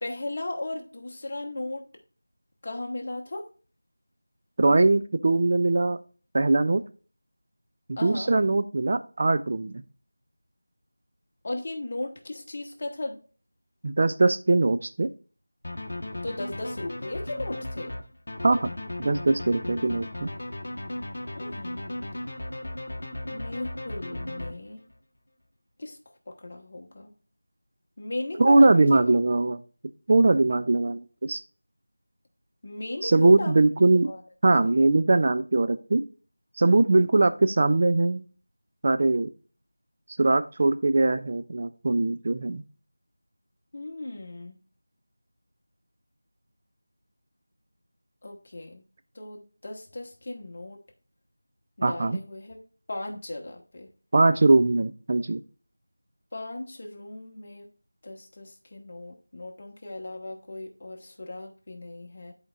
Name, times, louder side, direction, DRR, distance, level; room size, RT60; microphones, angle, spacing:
voice 1, 0.0-1.9 2.6-3.5 8.0-8.3 11.4-13.2 16.2-17.9 21.3-21.8 23.3-24.8 25.8-26.0 26.3-27.1 28.0-29.0 32.6-33.6 34.0-34.2 43.7-44.6 48.2-48.8 49.1-50.8 51.8-52.6 52.9-53.9 56.3-57.7 58.0-62.3, left 2 dB, 35° left, 2 dB, 1.1 m, -36 dB
voice 2, 4.6-6.0 6.3-6.8 7.9-9.8 13.8-15.1 18.4-18.7 19.0-20.3 28.4-29.6 30.1-31.4 33.0-34.1 34.4-36.0 36.6-38.2 38.8-39.3 40.2-42.6 51.8-52.2 54.1-55.4, right 2 dB, 35° right, 10 dB, 0.4 m, -21 dB
sound 1, 15.6-25.0, left 1 dB, 60° left, 0.9 m, -36 dB
11.0 x 4.5 x 2.4 m, 0.38 s
figure-of-eight pair, 175°, 0 cm